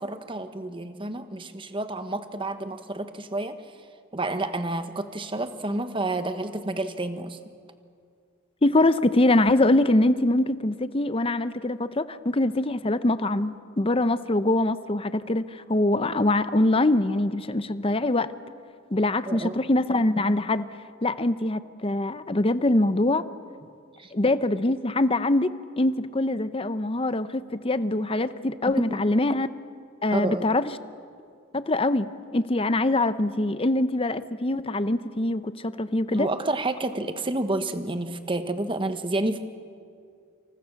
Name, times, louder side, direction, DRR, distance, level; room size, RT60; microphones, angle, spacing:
voice 1, 0.0-3.6 4.1-7.4 19.3-19.6 24.0-24.1 28.8-29.0 30.1-30.4 36.1-39.4, right 2 dB, 25° right, 9 dB, 1.2 m, -29 dB
voice 2, 8.6-18.3 18.9-20.6 21.0-23.2 24.1-29.5 30.0-30.6 31.5-36.3, left 2 dB, 25° left, 13 dB, 0.7 m, -23 dB
28.0 x 27.5 x 6.5 m, 2.3 s
head